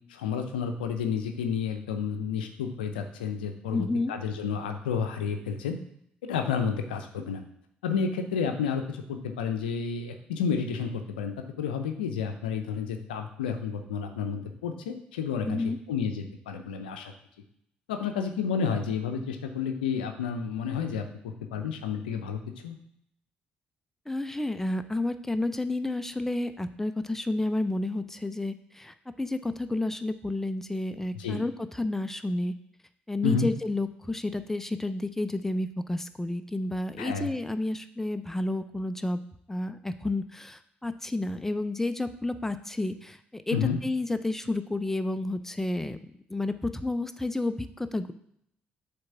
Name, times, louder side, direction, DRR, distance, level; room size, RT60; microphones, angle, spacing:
voice 1, 0.1-5.8 6.3-7.4 7.8-17.1 17.9-21.0 21.5-22.8 31.1-31.4 33.2-33.5 37.0-37.3 43.5-43.8, left 6 dB, 80° left, 6 dB, 0.6 m, -31 dB
voice 2, 3.7-4.1 15.4-15.8 24.1-32.5 33.1-39.2 39.5-43.6 43.8-46.0 46.3-48.1, left 2 dB, 10° left, 10 dB, 0.7 m, -30 dB
7.8 x 3.5 x 5.7 m, 0.72 s
figure-of-eight pair, 45°, 5 cm